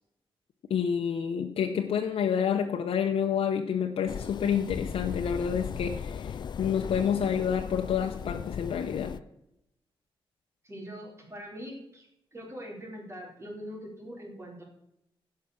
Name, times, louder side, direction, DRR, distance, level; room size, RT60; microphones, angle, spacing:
voice 1, 0.7-9.2, left 7 dB, 85° left, 3 dB, 0.8 m, -28 dB
sound 1, 4.1-9.2, left 7 dB, 50° left, 0.3 m, -37 dB
voice 2, 10.6-12.1 12.3-14.6, equal, 30° right, 0 dB, 3.8 m, -42 dB
16.5 x 5.8 x 6.3 m, 0.80 s
cardioid pair, 105°, 10 cm